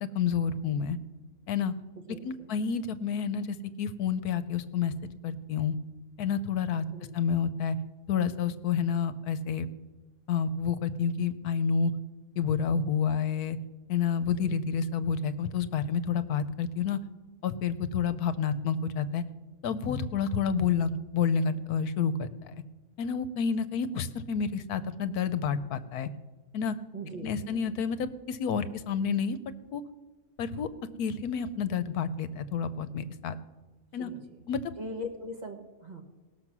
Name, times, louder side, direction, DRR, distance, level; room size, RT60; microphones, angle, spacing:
voice 1, 0.1-1.0 1.5-1.7 2.2-4.9 5.2-5.7 6.2-6.8 7.1-7.8 8.1-9.7 10.3-11.9 12.4-13.6 13.9-17.0 17.4-19.2 19.6-22.3 23.0-26.1 26.5-26.8 27.2-29.4 29.7-29.8 30.4-30.7 31.0-33.4 33.9-34.1 34.5-34.6, left 6 dB, 85° left, 13 dB, 1.2 m, -29 dB
voice 2, 2.1-2.5 6.9-7.2 14.4-14.5 26.9-27.7 34.0-34.4 34.8-36.0, equal, 30° right, 3 dB, 1.2 m, -41 dB
18.5 x 6.7 x 6.0 m, 1.3 s
omnidirectional pair, 1.6 m